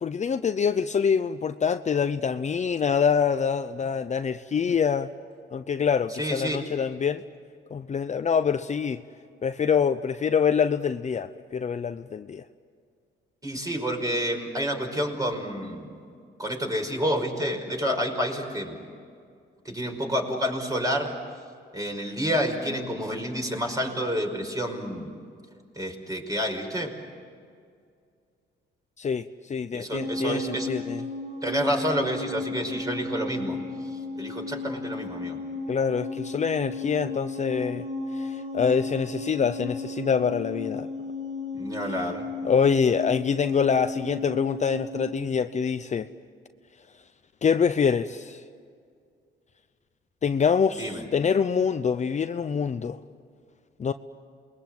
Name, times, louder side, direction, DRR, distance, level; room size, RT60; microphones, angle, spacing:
voice 1, 0.0-5.1 5.5-7.2 7.7-9.0 9.4-12.4 29.0-31.0 35.7-37.8 38.1-40.9 42.4-46.1 47.4-48.4 50.2-53.0 53.8-53.9, left 6 dB, 35° left, 9 dB, 0.7 m, -25 dB
voice 2, 6.2-6.6 13.4-15.9 16.4-18.8 19.7-21.1 21.7-25.1 25.8-26.9 29.7-30.7 31.4-33.6 34.2-35.4 41.5-42.3 50.7-51.0, equal, 15° right, 3 dB, 5.3 m, -29 dB
sound 1, 29.9-45.3, left 2 dB, 35° right, 2.9 m, -34 dB
28.0 x 21.5 x 7.9 m, 2.3 s
cardioid pair, 90°, 20 cm